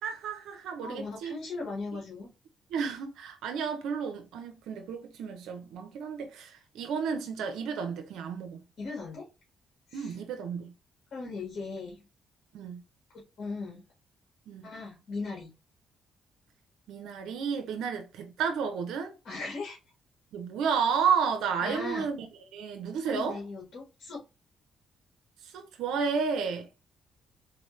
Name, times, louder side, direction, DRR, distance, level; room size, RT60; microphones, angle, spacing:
voice 1, 0.0-1.3 2.7-8.6 9.9-10.7 12.5-12.8 14.5-14.7 16.9-19.1 20.3-22.3 22.5-23.4 25.4-26.7, right 6 dB, 85° right, 0.7 m, -32 dB
voice 2, 0.8-2.3 8.8-9.3 9.9-10.2 11.1-12.0 13.4-13.8 14.6-15.5 19.2-19.8 21.6-22.1 23.0-24.2, left 3 dB, 55° left, 1.7 m, -38 dB
4.2 x 2.9 x 3.1 m
cardioid pair, 90°, 0 cm